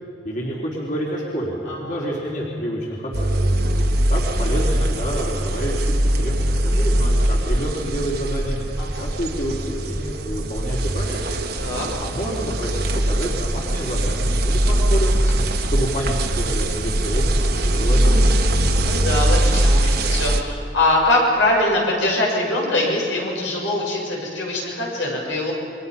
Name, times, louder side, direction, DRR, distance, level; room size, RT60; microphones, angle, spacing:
voice 1, 0.2-3.4 4.1-11.2 12.0-15.2 15.7-18.3, right 1 dB, 45° left, -4 dB, 3.7 m, -28 dB
voice 2, 1.7-2.0 3.6-3.9 6.6-6.7 8.8-9.1 11.6-11.9 18.7-25.5, left 1 dB, 85° left, -3 dB, 7.2 m, -23 dB
sound 1, 3.1-20.4, right 1 dB, 55° right, 1.6 m, -21 dB
29.0 x 23.5 x 5.5 m, 2.6 s
head